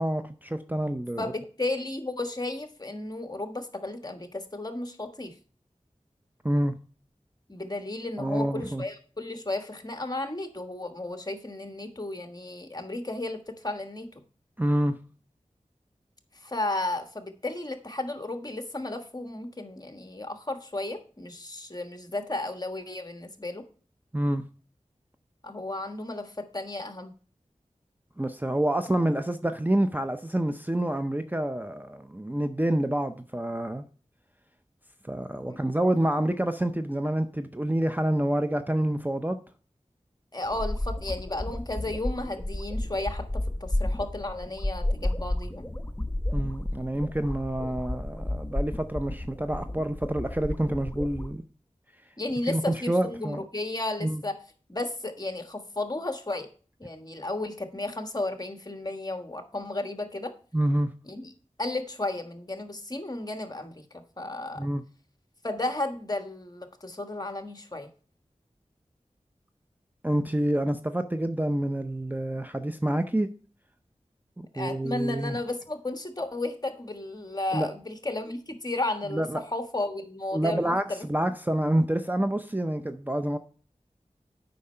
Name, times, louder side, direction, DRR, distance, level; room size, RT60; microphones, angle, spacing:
voice 1, 0.0-1.3 6.4-6.8 8.2-8.8 14.6-15.0 24.1-24.4 28.2-33.8 35.1-39.4 46.3-51.4 52.5-53.4 54.0-54.2 60.5-60.9 64.6-64.8 70.0-73.3 74.6-75.4 77.5-77.7 79.1-79.4 80.3-83.4, right 1 dB, 15° right, 0.6 m, -27 dB
voice 2, 1.2-5.4 7.5-14.1 16.3-23.6 25.4-27.1 35.5-35.6 40.3-45.7 52.2-54.4 54.7-56.5 56.8-60.3 61.1-61.3 61.6-63.8 64.2-64.7 65.4-67.9 74.5-80.7, left 2 dB, 30° left, 1.4 m, -33 dB
sound 1, 40.4-51.3, left 1 dB, 15° left, 1.0 m, -32 dB
8.5 x 5.4 x 5.5 m
wide cardioid pair, 40°, 13 cm